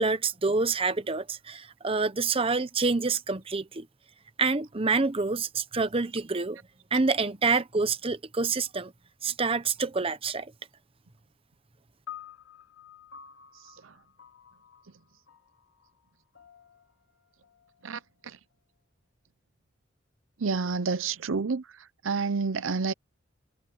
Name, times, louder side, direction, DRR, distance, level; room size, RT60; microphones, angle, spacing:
voice 1, 0.0-3.9 4.4-6.6 6.9-8.9 9.2-10.5, right 4 dB, 30° right, 0.9 m, -27 dB
sound 1, 12.1-18.5, left 9 dB, 75° left, 3.5 m, -50 dB
voice 2, 20.4-21.6 22.0-22.9, right 4 dB, 85° right, 0.7 m, -28 dB
head